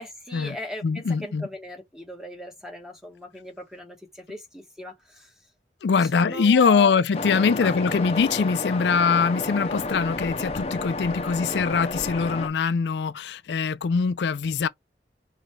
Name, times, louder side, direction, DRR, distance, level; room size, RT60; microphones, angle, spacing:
voice 1, 0.0-5.3 6.0-7.3 7.6-7.7, left 2 dB, 5° right, 1.1 m, -38 dB
voice 2, 0.8-1.5 5.8-14.7, left 5 dB, 80° left, 0.4 m, -23 dB
Waves surf, 7.1-12.5, left 2 dB, 35° left, 0.6 m, -31 dB
5.0 x 3.2 x 3.2 m
head